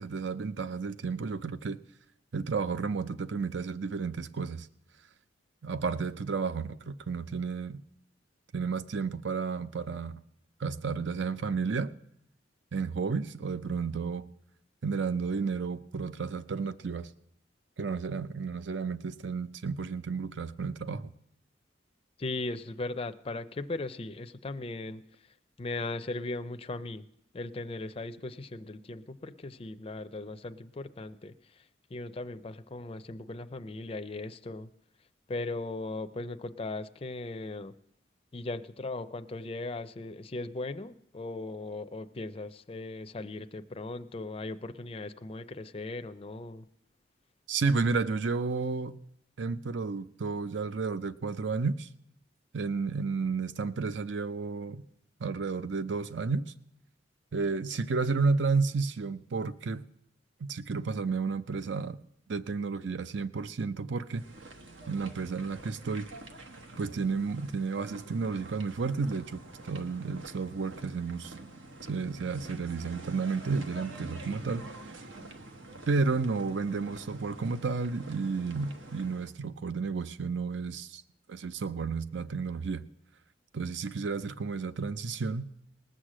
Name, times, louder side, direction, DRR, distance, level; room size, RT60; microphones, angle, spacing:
voice 1, 0.0-1.8 2.3-4.7 5.6-7.8 8.5-10.2 10.6-11.9 12.7-14.3 14.8-17.1 17.8-21.1 47.5-49.0 49.4-51.9 52.5-54.8 55.2-56.5 57.3-59.8 60.4-62.0 62.3-64.2 64.9-66.1 66.8-71.5 71.9-74.7 75.9-81.0 81.3-82.8 83.5-85.5, right 4 dB, 70° right, 0.5 m, -32 dB
voice 2, 22.2-25.1 25.6-27.0 27.3-31.6 31.9-34.7 35.3-37.7 38.3-46.7, left 2 dB, 30° left, 0.5 m, -38 dB
sound 1, 64.1-79.3, right 2 dB, 85° right, 1.3 m, -47 dB
19.5 x 6.5 x 7.5 m
head